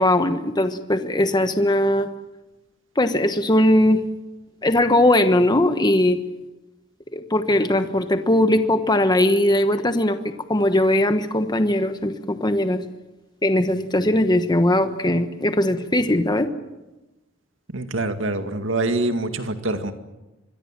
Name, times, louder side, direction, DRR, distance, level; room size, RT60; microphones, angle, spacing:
voice 1, 0.0-2.1 3.0-4.0 4.6-6.2 7.1-12.8 13.4-16.5, left 1 dB, 20° left, 8 dB, 1.2 m, -19 dB
voice 2, 17.7-19.9, right 2 dB, 80° right, 7 dB, 2.2 m, -25 dB
26.0 x 22.5 x 7.5 m, 1.0 s
head